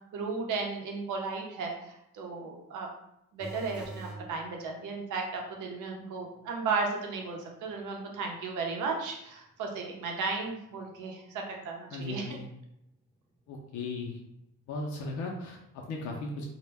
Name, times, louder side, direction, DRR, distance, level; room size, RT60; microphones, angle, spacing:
voice 1, 0.1-2.9 3.3-12.4, right 4 dB, 80° right, 1 dB, 0.6 m, -35 dB
sound 1, 3.4-4.3 10.7-10.8, right 2 dB, 5° right, 0.4 m, -42 dB
voice 2, 11.9-12.4 13.5-14.2 14.7-16.5, left 2 dB, 70° left, 0 dB, 0.5 m, -37 dB
2.1 x 2.0 x 3.2 m, 0.81 s
cardioid pair, 90°, 30 cm